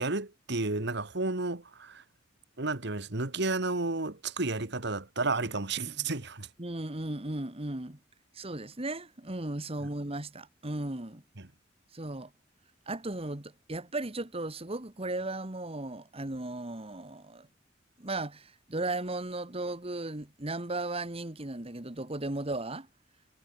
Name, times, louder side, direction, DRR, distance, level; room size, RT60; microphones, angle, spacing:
voice 1, 0.0-2.0 2.6-6.5, right 3 dB, 60° right, 2.0 m, -32 dB
voice 2, 6.6-8.0 8.3-11.2 11.9-12.3 12.9-17.5 18.0-22.9, right 2 dB, 30° right, 1.8 m, -36 dB
head